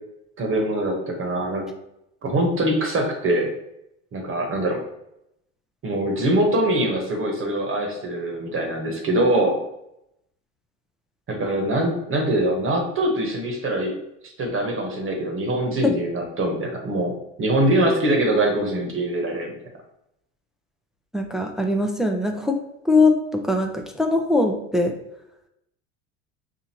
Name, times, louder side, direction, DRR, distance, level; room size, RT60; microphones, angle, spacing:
voice 1, 0.4-1.6 2.2-3.5 4.1-4.8 5.8-9.6 11.3-13.9 14.2-17.1 17.4-19.6, right 1 dB, 35° right, 2 dB, 1.0 m, -23 dB
voice 2, 21.1-22.6 22.8-24.9, left 2 dB, ahead, 3 dB, 0.3 m, -21 dB
4.4 x 2.5 x 2.8 m, 0.81 s
supercardioid pair, 90°, 39 cm